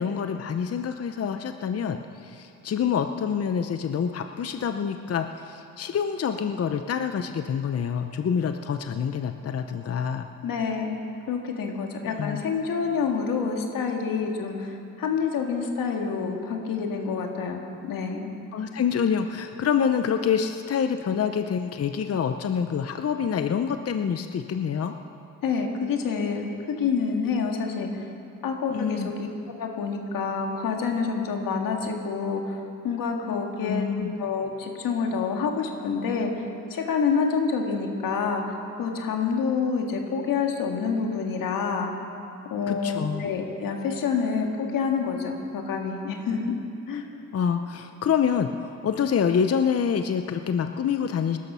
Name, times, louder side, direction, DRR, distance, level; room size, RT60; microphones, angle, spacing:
voice 1, 0.0-10.3 12.0-12.4 18.5-24.9 28.7-29.1 33.6-34.1 42.7-43.3 47.3-51.4, left 7 dB, 45° left, 8 dB, 0.7 m, -26 dB
voice 2, 10.4-11.0 11.3-18.3 25.4-28.1 28.4-29.3 29.6-36.3 36.7-41.9 42.5-46.5 46.9-47.0, left 5 dB, 85° left, 2 dB, 2.0 m, -27 dB
19.5 x 12.5 x 5.6 m, 2.6 s
cardioid pair, 80°, 33 cm